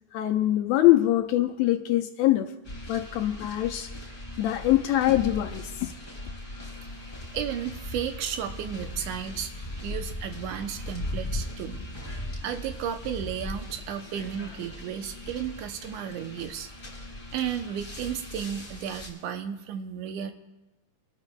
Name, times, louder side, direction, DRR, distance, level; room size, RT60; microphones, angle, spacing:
voice 1, 0.1-2.5 2.9-3.9 4.4-5.9, left 14 dB, 80° left, 6 dB, 1.7 m, -23 dB
sound 1, 2.6-19.1, left 1 dB, 15° left, 3.4 m, -39 dB
voice 2, 7.3-11.9 12.4-16.7 17.3-20.3, right 9 dB, 85° right, 8 dB, 2.2 m, -33 dB
24.5 x 13.0 x 2.3 m, 1.0 s
omnidirectional pair, 3.4 m